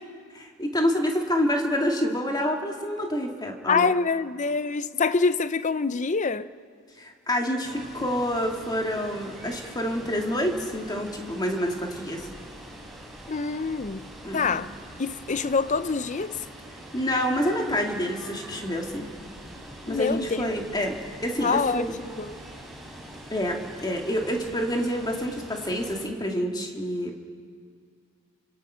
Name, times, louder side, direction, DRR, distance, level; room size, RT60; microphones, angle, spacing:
voice 1, 0.3-3.9 7.0-12.3 14.2-14.4 16.9-19.1 19.9-21.0 21.2-21.9 23.3-27.2, equal, 20° left, 2.3 m, -27 dB
voice 2, 3.7-6.5 13.3-14.1 14.3-14.7 15.0-16.4 19.9-20.4 21.4-21.9 22.2-22.4, left 4 dB, 35° left, 0.6 m, -25 dB
Water, 7.6-26.1, right 1 dB, ahead, 4.7 m, -44 dB
29.0 x 25.5 x 5.7 m
head